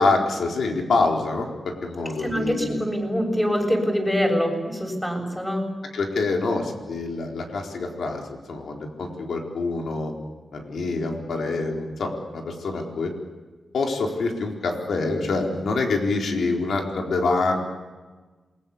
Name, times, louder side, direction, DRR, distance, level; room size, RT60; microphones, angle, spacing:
voice 1, 0.0-2.8 5.9-10.1 10.5-13.1 13.7-17.6, left 3 dB, 90° left, 2 dB, 4.2 m, -26 dB
voice 2, 2.2-5.7, equal, 5° left, 2 dB, 7.5 m, -24 dB
28.5 x 22.0 x 7.2 m, 1.3 s
wide cardioid pair, 115°, 0 cm